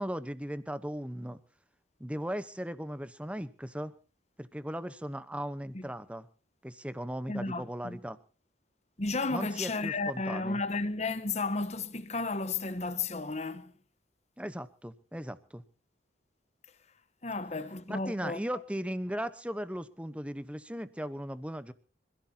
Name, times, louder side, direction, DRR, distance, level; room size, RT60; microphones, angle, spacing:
voice 1, 0.0-1.4 2.0-3.9 4.4-6.3 6.6-8.2 9.3-10.6 14.4-15.6 17.9-21.7, equal, 5° right, 1.0 m, -37 dB
voice 2, 7.3-8.0 9.0-13.7 17.2-18.4, left 3 dB, 35° left, 1.1 m, -33 dB
26.0 x 16.0 x 2.9 m
head